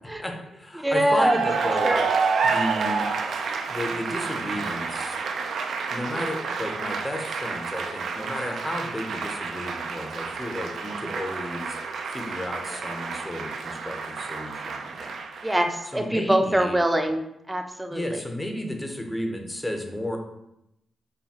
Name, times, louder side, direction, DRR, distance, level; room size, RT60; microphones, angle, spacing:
voice 1, 0.2-2.0 2.4-3.1 3.7-5.2 5.9-11.8 12.1-15.2 15.9-16.8 17.9-20.2, left 1 dB, 20° left, 3 dB, 0.9 m, -33 dB
voice 2, 0.8-1.4 1.8-2.1 15.4-18.2, right 1 dB, 10° right, 5 dB, 0.6 m, -24 dB
Cheering / Applause, 1.0-16.0, right 5 dB, 70° right, 0.4 m, -29 dB
5.4 x 2.3 x 2.9 m, 0.83 s
supercardioid pair, 45°, 0 cm